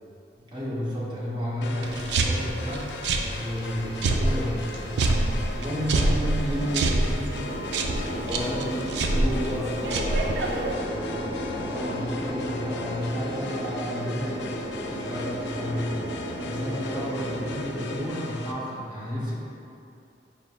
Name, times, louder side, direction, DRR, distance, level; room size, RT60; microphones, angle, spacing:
voice 1, 0.5-2.9 3.3-7.5 8.1-9.6 11.6-16.0 16.4-19.3, equal, 25° right, -7 dB, 0.7 m, -32 dB
sound 1, 1.6-18.5, left 2 dB, 75° left, 0.3 m, -39 dB
sound 2, 1.8-10.7, right 2 dB, 75° right, 0.3 m, -27 dB
sound 3, 7.3-18.1, equal, 60° right, 1.2 m, -34 dB
voice 2, 8.2-8.5 9.3-11.6 14.9-15.1 15.7-16.3, left 1 dB, 5° left, -10 dB, 0.4 m, -36 dB
5.4 x 3.2 x 2.3 m, 2.7 s
head